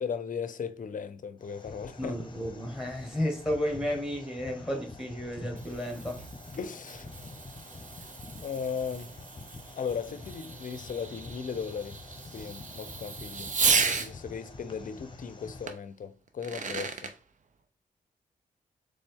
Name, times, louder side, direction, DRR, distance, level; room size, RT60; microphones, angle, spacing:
voice 1, 0.0-2.2 6.6-7.1 8.4-9.1 9.8-12.0 12.3-13.5 13.9-17.1, left 6 dB, 55° left, 0.6 m, -36 dB
sound 1, 1.4-15.7, left 3 dB, 30° left, 0.9 m, -47 dB
voice 2, 2.0-6.2, equal, 5° right, 1.9 m, -32 dB
Fireworks, 5.3-14.1 15.7-15.8 16.3-17.1, right 5 dB, 50° right, 0.7 m, -34 dB
4.0 x 3.3 x 3.7 m
supercardioid pair, 40°, 17 cm